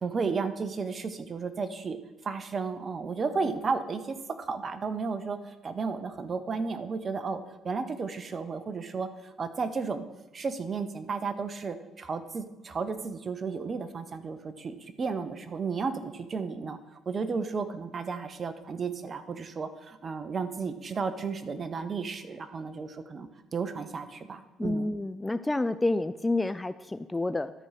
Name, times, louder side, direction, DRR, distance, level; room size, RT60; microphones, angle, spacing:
voice 1, 0.0-2.0 2.2-10.0 10.3-16.8 17.1-24.9, right 5 dB, 40° right, 11 dB, 0.9 m, -33 dB
voice 2, 24.6-27.5, left 2 dB, 15° left, 13 dB, 0.4 m, -29 dB
12.0 x 4.7 x 5.8 m, 1.1 s
supercardioid pair, 70°, 0 cm